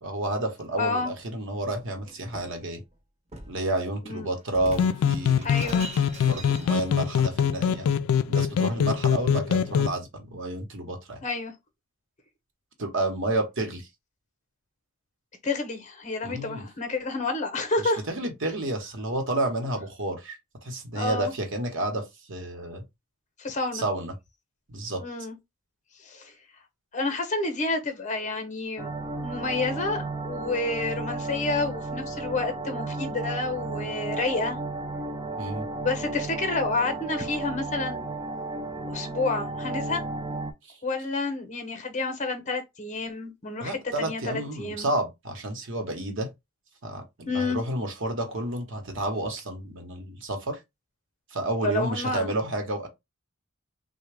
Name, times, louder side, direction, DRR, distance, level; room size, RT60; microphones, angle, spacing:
voice 1, 0.0-2.8 3.5-5.4 6.2-11.2 12.8-13.9 16.2-16.7 17.8-22.8 23.7-24.1 24.7-25.0 35.4-35.7 40.7-40.8 43.6-46.3 46.8-50.6 51.3-52.9, right 1 dB, 65° right, 1.0 m, -30 dB
voice 2, 0.8-1.1 4.0-4.3 5.4-5.9 11.2-11.5 15.4-18.0 20.9-21.3 23.4-23.9 25.0-25.4 26.0-26.3 26.9-28.9 29.2-34.6 35.7-38.0 38.9-40.0 40.8-44.9 47.3-47.6 51.6-52.3, left 3 dB, 35° left, 0.8 m, -29 dB
Shatter, 1.7-2.6 3.3-3.6 4.5-7.1, right 2 dB, 35° right, 0.9 m, -42 dB
sound 1, 4.7-9.9, left 7 dB, 90° left, 0.3 m, -24 dB
sound 2, 28.8-40.5, right 3 dB, 20° right, 0.4 m, -33 dB
3.4 x 2.2 x 3.2 m
head